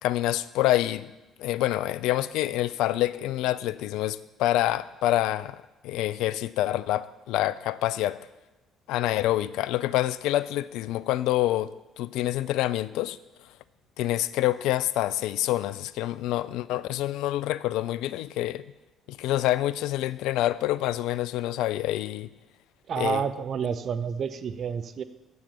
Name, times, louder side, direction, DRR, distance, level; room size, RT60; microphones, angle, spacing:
voice 1, 0.0-1.1 1.4-5.6 5.8-8.2 8.9-13.2 14.0-18.6 19.1-22.3 23.0-23.2, left 14 dB, 65° left, 16 dB, 0.3 m, -27 dB
voice 2, 22.9-25.0, right 7 dB, 50° right, 11 dB, 0.5 m, -29 dB
7.3 x 7.2 x 7.0 m, 1.1 s
figure-of-eight pair, 50°, 0 cm